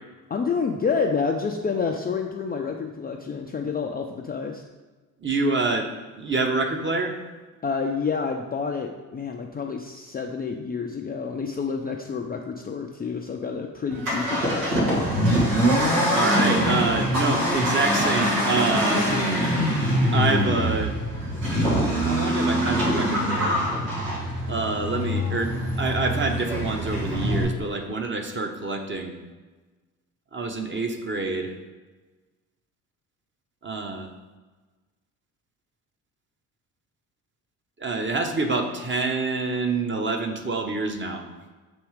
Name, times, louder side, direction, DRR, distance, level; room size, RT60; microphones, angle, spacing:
voice 1, 0.3-4.6 7.6-15.1, left 5 dB, 20° left, 2 dB, 0.4 m, -29 dB
voice 2, 5.2-7.2 16.1-19.1 20.1-20.9 21.5-23.6 24.5-29.1 30.3-31.5 33.6-34.1 37.8-41.3, right 3 dB, 25° right, 4 dB, 0.9 m, -27 dB
Accelerating revving vroom, 13.9-27.4, equal, 85° right, 1.5 m, -24 dB
7.0 x 3.1 x 4.7 m, 1.3 s
hypercardioid pair, 50°, 46 cm